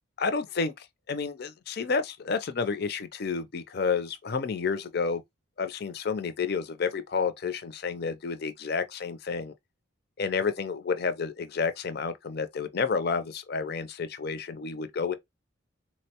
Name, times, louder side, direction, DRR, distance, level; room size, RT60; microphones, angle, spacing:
voice 1, 0.2-5.2 5.6-9.5 10.2-15.1, left 5 dB, 50° left, 0.5 m, -30 dB
3.8 x 2.1 x 2.8 m
head